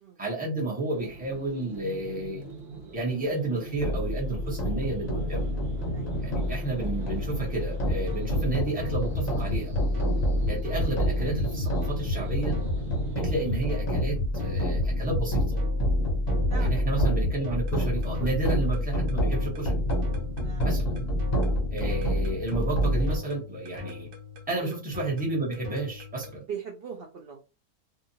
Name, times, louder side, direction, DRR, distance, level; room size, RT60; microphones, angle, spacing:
voice 1, 0.2-2.4 2.9-5.5 6.2-9.7 10.5-12.6 13.2-15.6 16.6-19.8 20.6-21.1 21.7-24.1 24.5-26.4, right 2 dB, 5° right, -4 dB, 0.8 m, -31 dB
sound 1, 0.9-13.6, right 2 dB, 45° right, 1.1 m, -42 dB
sound 2, 3.7-23.2, equal, 35° left, 0.7 m, -28 dB
sound 3, 7.8-26.4, left 2 dB, 85° right, 1.3 m, -35 dB
voice 2, 16.5-16.8 18.2-18.3 20.4-20.7 21.5-21.6 24.6-24.7 26.5-27.4, right 7 dB, 65° right, -1 dB, 0.5 m, -40 dB
2.7 x 2.4 x 2.7 m, 0.31 s
omnidirectional pair, 1.6 m